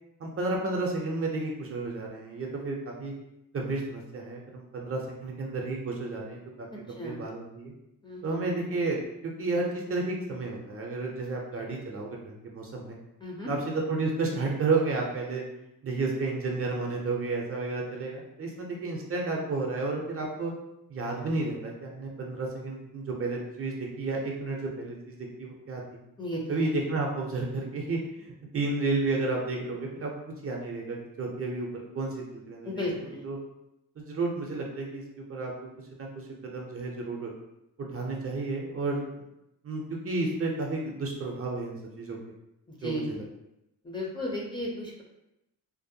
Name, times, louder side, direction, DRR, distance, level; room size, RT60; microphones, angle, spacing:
voice 1, 0.2-3.1 3.5-7.7 8.2-9.1 9.4-13.0 13.5-13.6 13.9-15.4 15.8-20.5 20.9-25.8 26.5-30.1 30.4-32.7 33.2-33.4 34.0-35.0 35.3-35.5 36.0-36.3 36.5-37.3 37.8-39.0 39.6-42.2 42.8-43.2, right 3 dB, 40° right, -1 dB, 0.5 m, -32 dB
voice 2, 8.0-8.5 13.2-13.5 26.2-26.6 32.6-33.3 42.7-43.1 43.8-45.0, left 1 dB, 15° left, -3 dB, 0.5 m, -34 dB
2.5 x 2.1 x 2.6 m, 0.87 s
cardioid pair, 105°, 36 cm